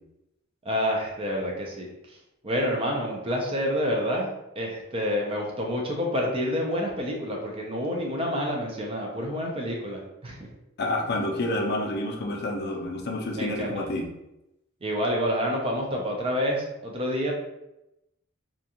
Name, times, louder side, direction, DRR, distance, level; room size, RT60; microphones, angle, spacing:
voice 1, 0.6-2.2 2.4-10.5 13.4-13.9 14.8-17.3, equal, 25° right, 0 dB, 0.4 m, -28 dB
voice 2, 10.8-14.1, left 1 dB, 50° left, 0 dB, 0.5 m, -29 dB
2.5 x 2.3 x 2.8 m, 0.90 s
head